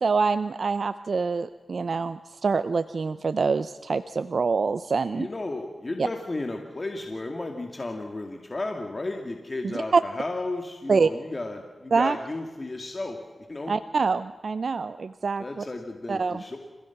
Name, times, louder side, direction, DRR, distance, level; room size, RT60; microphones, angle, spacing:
voice 1, 0.0-5.3 6.0-6.1 9.9-10.0 10.9-11.1 11.9-12.2 13.7-15.6 16.1-16.4, right 4 dB, 65° right, 12 dB, 0.7 m, -25 dB
voice 2, 5.1-13.2 13.5-13.7 15.4-16.6, left 2 dB, 40° left, 3 dB, 2.4 m, -33 dB
29.5 x 16.0 x 6.0 m, 1.3 s
cardioid pair, 50°, 0 cm